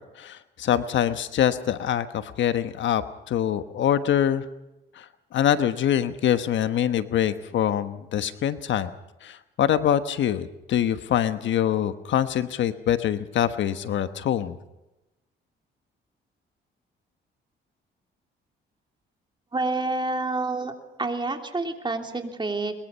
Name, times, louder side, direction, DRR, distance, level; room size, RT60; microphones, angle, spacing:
voice 1, 0.2-3.0 3.3-4.4 5.0-5.1 5.3-8.9 9.2-14.6, left 10 dB, 70° left, 11 dB, 1.2 m, -24 dB
voice 2, 19.5-20.7 21.0-22.7, right 2 dB, 25° right, 4 dB, 3.2 m, -28 dB
22.0 x 22.0 x 5.6 m, 0.98 s
cardioid pair, 90°, 20 cm